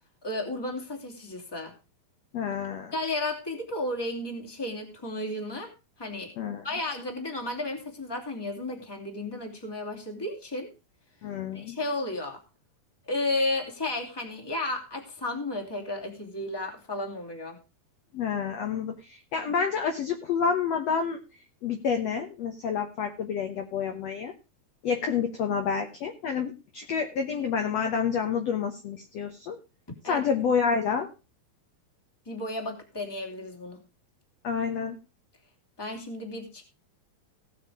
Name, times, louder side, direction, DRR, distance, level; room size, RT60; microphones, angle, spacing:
voice 1, 0.2-1.7 2.9-5.7 6.0-6.3 6.6-10.7 11.5-12.4 13.1-17.6 30.0-30.2 32.3-33.8 35.8-36.7, left 2 dB, 5° left, 2 dB, 2.2 m, -33 dB
voice 2, 2.3-2.9 6.4-6.6 11.2-11.8 18.1-21.2 21.6-24.3 24.8-29.6 30.0-31.1 34.4-35.0, left 6 dB, 60° left, 5 dB, 1.8 m, -29 dB
17.5 x 6.6 x 4.9 m, 0.30 s
omnidirectional pair, 4.4 m